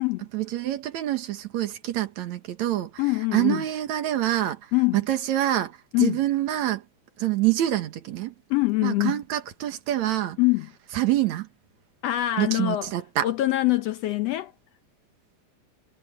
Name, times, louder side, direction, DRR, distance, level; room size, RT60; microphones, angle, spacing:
voice 1, 0.3-2.9 3.3-4.6 4.9-6.8 7.2-8.3 8.8-10.4 10.9-11.5 12.4-13.3, right 13 dB, 70° right, 2.6 m, -26 dB
voice 2, 3.0-3.6 4.7-5.0 5.9-6.2 8.5-9.2 10.4-10.7 12.0-12.9 13.2-14.5, left 18 dB, 75° left, 1.5 m, -24 dB
omnidirectional pair, 3.5 m